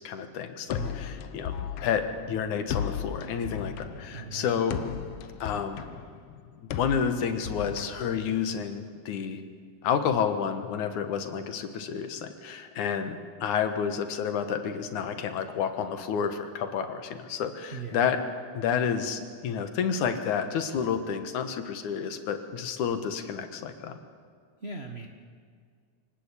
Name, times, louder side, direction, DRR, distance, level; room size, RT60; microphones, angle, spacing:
voice 1, 0.0-1.5 1.8-4.8 5.4-5.8 6.6-9.4 9.8-18.2 18.5-24.0, left 7 dB, 85° left, 8 dB, 2.9 m, -30 dB
sound 1, 0.7-8.6, left 8 dB, 65° left, 1.6 m, -36 dB
voice 2, 4.1-4.6 17.7-18.0 24.6-25.1, right 4 dB, 35° right, 3 dB, 1.0 m, -39 dB
25.0 x 18.0 x 8.4 m, 2.1 s
omnidirectional pair, 3.4 m